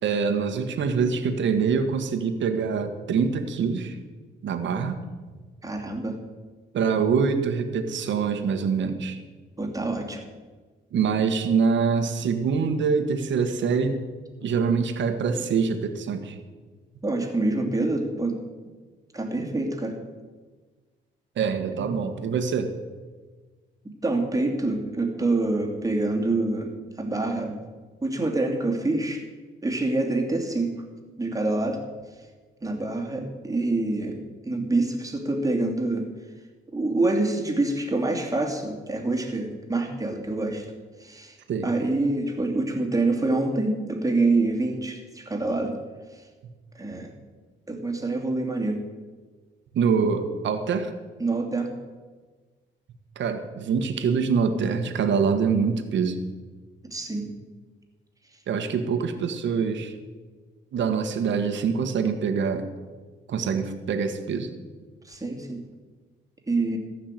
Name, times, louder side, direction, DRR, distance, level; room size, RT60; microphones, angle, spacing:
voice 1, 0.0-3.9 4.4-5.0 6.7-9.2 10.9-14.0 14.4-16.3 21.4-22.7 41.5-41.7 49.7-50.9 53.1-56.2 58.5-59.9 60.7-62.7 63.3-64.5, right 5 dB, 70° right, 7 dB, 1.6 m, -25 dB
voice 2, 5.6-6.2 9.6-10.2 17.0-18.4 19.1-20.0 21.8-21.9 24.0-26.7 27.0-27.6 28.0-29.2 29.6-30.7 31.2-31.8 32.6-34.2 34.4-36.1 36.7-40.7 41.0-41.4 41.6-45.7 46.1-46.2 46.7-47.1 47.7-48.8 51.2-51.7 56.9-57.3 65.0-65.6 66.5-66.8, right 2 dB, 15° right, 1 dB, 2.6 m, -26 dB
14.5 x 6.1 x 9.2 m, 1.4 s
cardioid pair, 90°, 20 cm